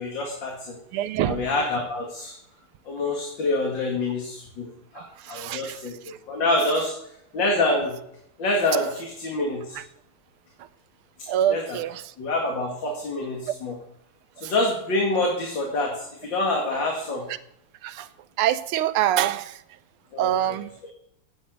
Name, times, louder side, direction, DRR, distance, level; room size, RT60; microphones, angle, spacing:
voice 1, 0.0-0.8 1.2-2.3 2.9-4.7 4.9-6.9 7.3-8.0 8.4-9.8 11.5-11.8 12.2-13.8 14.4-17.2 20.1-20.6, left 2 dB, 60° left, 1 dB, 2.7 m, -26 dB
voice 2, 0.9-1.4 5.3-5.8 11.3-12.0 14.4-14.5 17.8-18.1 18.4-19.5 20.2-20.7, right 11 dB, 85° right, 13 dB, 1.6 m, -24 dB
11.5 x 9.1 x 8.1 m, 0.73 s
omnidirectional pair, 2.4 m